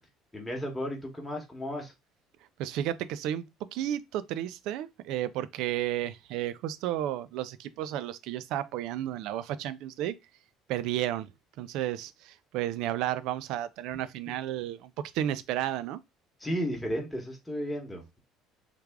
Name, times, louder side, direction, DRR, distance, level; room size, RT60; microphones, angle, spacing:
voice 1, 0.3-1.9 16.4-18.2, equal, 5° left, 1.0 m, -34 dB
voice 2, 2.6-3.5 3.7-10.2 10.7-11.3 11.6-16.0, right 12 dB, 70° right, 0.3 m, -32 dB
3.3 x 2.4 x 3.4 m
cardioid pair, 130°, 0 cm